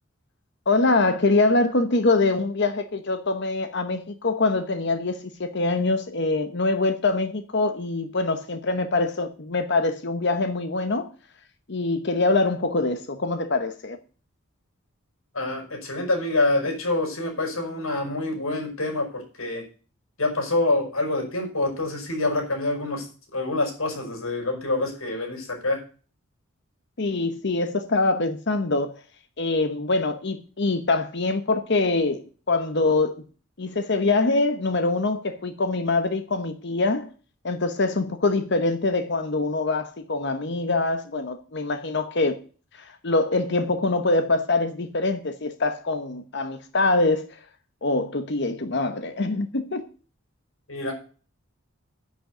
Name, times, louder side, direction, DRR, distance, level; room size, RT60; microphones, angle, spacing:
voice 1, 0.7-11.1 11.7-14.0 27.0-28.9 29.4-33.2 33.6-37.1 37.4-42.4 42.8-47.4 47.8-49.9, left 3 dB, 55° left, 1.0 m, -24 dB
voice 2, 15.3-19.6 20.2-23.1 23.3-25.8 50.7-50.9, left 2 dB, 80° left, 6.0 m, -26 dB
10.5 x 6.5 x 8.3 m
head